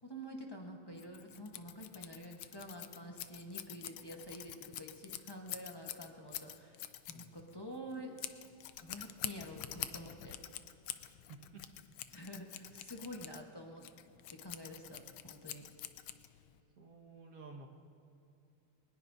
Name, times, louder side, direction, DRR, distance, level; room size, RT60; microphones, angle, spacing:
voice 1, 0.0-6.8 7.1-8.2 8.8-10.4 12.1-13.9 14.3-15.7, equal, 15° left, 1 dB, 0.8 m, -48 dB
Scissors, 1.0-16.6, left 12 dB, 80° left, 1.5 m, -47 dB
voice 2, 16.8-17.7, right 4 dB, 45° right, -1 dB, 1.8 m, -53 dB
22.0 x 20.0 x 2.7 m, 2.8 s
omnidirectional pair, 2.3 m